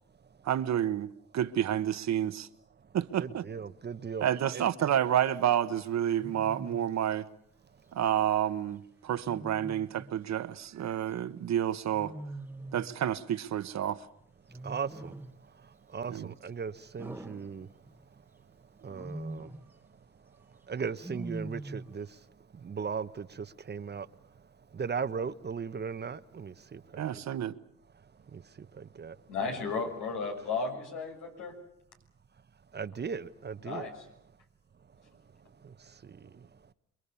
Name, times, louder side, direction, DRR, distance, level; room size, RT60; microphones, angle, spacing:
voice 1, 0.4-2.5 2.9-3.4 4.2-7.2 7.9-12.1 12.7-14.0 16.1-16.3 27.0-27.5, right 10 dB, 65° right, 1.3 m, -29 dB
voice 2, 3.2-4.2 4.5-4.6 14.6-15.1 15.9-17.7 18.8-19.5 20.7-22.1 22.6-24.1 24.7-27.2 28.3-29.2 32.7-33.9 35.6-35.7 36.0-36.5, right 6 dB, 35° right, 1.0 m, -37 dB
Wild animals, 6.2-6.9 9.2-10.2 11.9-13.0 14.5-15.5 17.0-18.1 18.8-19.7 21.0-22.0, right 2 dB, 5° right, 1.3 m, -43 dB
voice 3, 29.3-31.5 33.6-34.0, left 4 dB, 85° left, 6.5 m, -34 dB
27.5 x 22.5 x 7.1 m
cardioid pair, 90°, 30 cm